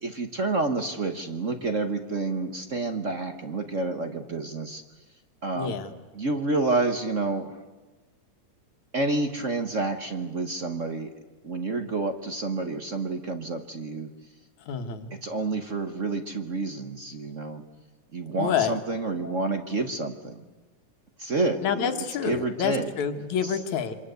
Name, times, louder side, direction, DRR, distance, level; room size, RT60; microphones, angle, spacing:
voice 1, 0.0-4.8 5.4-5.7 6.1-7.5 8.9-11.1 11.4-14.1 15.2-17.6 18.1-20.4 21.2-22.9 23.4-23.6, right 3 dB, 50° right, 7 dB, 0.9 m, -29 dB
voice 2, 5.6-5.9 14.7-15.1 18.4-18.7 21.6-23.9, left 7 dB, 75° left, 7 dB, 2.9 m, -28 dB
27.0 x 25.5 x 8.1 m, 1.3 s
omnidirectional pair, 3.4 m